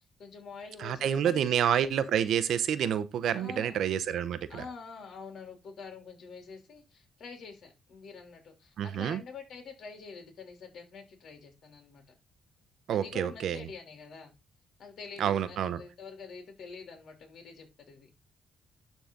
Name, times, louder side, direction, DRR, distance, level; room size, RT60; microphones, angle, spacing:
voice 1, 0.2-1.6 3.4-3.8 4.5-12.0 12.9-14.3 14.8-18.1, left 5 dB, 65° left, 3.1 m, -46 dB
voice 2, 0.8-4.6 8.8-9.2 12.9-13.6 15.2-15.8, right 9 dB, 70° right, 0.8 m, -28 dB
12.0 x 4.0 x 3.8 m
cardioid pair, 90°, 0 cm